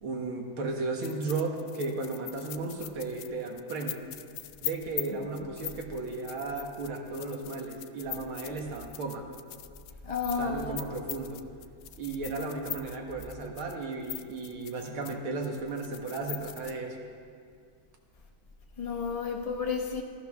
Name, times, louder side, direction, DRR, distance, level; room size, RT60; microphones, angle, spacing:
voice 1, 0.0-4.0 4.6-9.3 10.4-11.4 12.0-17.0, right 3 dB, 75° right, 2 dB, 2.5 m, -35 dB
sound 1, 1.0-15.1 15.4-16.8, left 13 dB, 70° left, 1.1 m, -41 dB
voice 2, 10.0-10.7 18.8-20.0, left 5 dB, 50° left, 1 dB, 0.4 m, -31 dB
15.0 x 14.0 x 6.3 m, 2.2 s
omnidirectional pair, 2.3 m